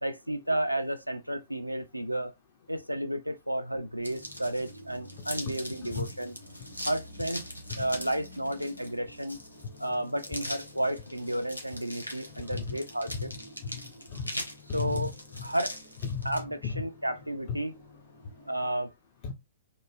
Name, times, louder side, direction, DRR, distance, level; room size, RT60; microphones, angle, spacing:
voice 1, 0.0-2.3 2.7-6.3 6.8-7.4 7.8-9.4 9.8-13.3 14.7-15.1 15.4-15.7 16.3-17.7 18.5-18.9, right 1 dB, 90° right, 0.3 m, -32 dB
sound 1, 4.0-16.4, left 1 dB, 85° left, 0.6 m, -42 dB
sound 2, 4.0-18.7, left 1 dB, 65° left, 1.2 m, -51 dB
voice 2, 13.1-13.8 14.1-14.3 14.7-15.1 15.4-15.5 16.0-16.8 17.5-17.6 19.2-19.3, left 6 dB, 35° left, 0.4 m, -35 dB
3.0 x 2.0 x 2.2 m
figure-of-eight pair, 115°, 0 cm